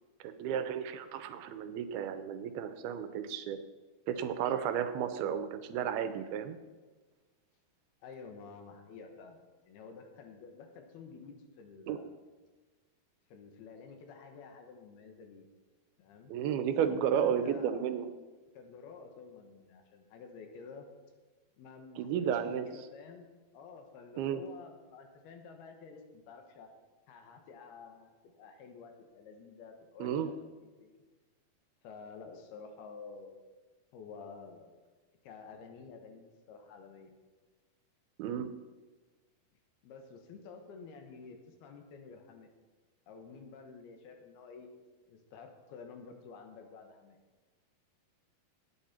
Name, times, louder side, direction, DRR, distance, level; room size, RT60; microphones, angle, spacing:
voice 1, 0.2-3.6 4.1-6.6 11.9-12.0 16.3-18.1 22.0-22.6 24.2-24.4 30.0-30.3 38.2-38.5, right 8 dB, 85° right, 10 dB, 2.7 m, -33 dB
voice 2, 8.0-12.1 13.3-15.5 16.0-16.3 16.8-17.9 18.5-20.9 21.6-23.3 23.5-26.7 27.1-31.0 31.8-33.4 33.9-34.7 35.2-37.1 39.8-42.5 43.1-44.7 45.1-47.2, left 5 dB, 80° left, 4 dB, 3.3 m, -51 dB
17.5 x 8.8 x 4.4 m, 1.3 s
omnidirectional pair, 4.5 m